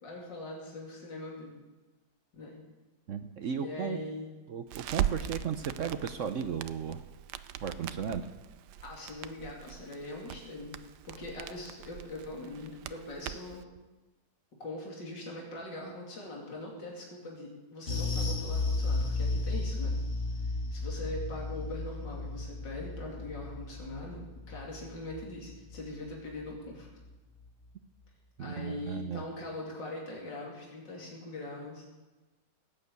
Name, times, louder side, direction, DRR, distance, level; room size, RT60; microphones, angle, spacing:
voice 1, 0.0-1.5 2.3-2.6 3.5-4.4 5.2-5.3 8.8-10.7 11.0-13.6 14.6-19.9 20.4-26.9 28.4-31.8, left 2 dB, 85° left, -2 dB, 3.4 m, -42 dB
voice 2, 3.1-4.0 4.5-7.0 7.6-8.2 28.4-29.2, right 7 dB, 60° right, 9 dB, 0.9 m, -35 dB
Crackle, 4.7-13.6, right 11 dB, 75° right, 1.2 m, -40 dB
sound 1, 17.9-26.5 26.8-27.0 27.4-27.5, left 3 dB, 40° left, 2.6 m, -34 dB
17.5 x 8.9 x 8.2 m, 1.2 s
omnidirectional pair, 1.9 m